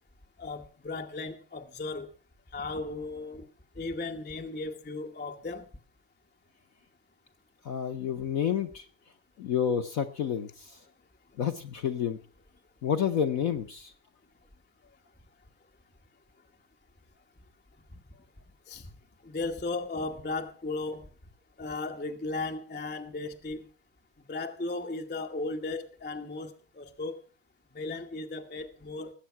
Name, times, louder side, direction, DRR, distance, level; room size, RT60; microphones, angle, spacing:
voice 1, 0.4-2.1 2.5-3.5 3.8-5.6 18.7-18.9 19.2-21.1 21.6-23.6 24.3-27.2 27.7-29.1, left 3 dB, 10° left, 0.5 m, -36 dB
voice 2, 7.6-8.9 9.4-10.8 11.4-12.2 12.8-13.9, left 8 dB, 55° left, 1.0 m, -29 dB
19.0 x 8.2 x 5.7 m
omnidirectional pair, 2.3 m